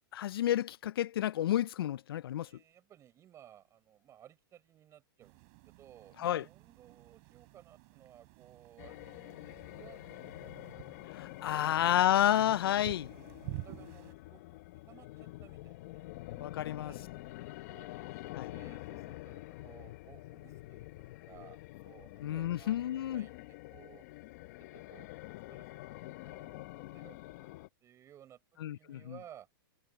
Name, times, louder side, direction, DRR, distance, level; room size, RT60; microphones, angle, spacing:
voice 1, 0.1-2.5 6.2-6.4 11.1-13.1 16.4-16.9 18.3-18.5 22.2-23.3 28.6-29.0, left 12 dB, 85° left, 0.4 m, -30 dB
voice 2, 2.4-11.0 11.5-12.0 12.6-14.6 14.9-17.4 17.7-17.9 18.5-24.0 24.7-25.1 25.5-25.9 26.3-26.7 26.9-28.4 28.7-29.5, right 11 dB, 25° right, 5.3 m, -58 dB
sound 1, 5.2-14.1, right 37 dB, 45° right, 6.9 m, -50 dB
sound 2, 8.8-27.7, left 19 dB, 50° left, 0.8 m, -47 dB
hypercardioid pair, 145°, 12 cm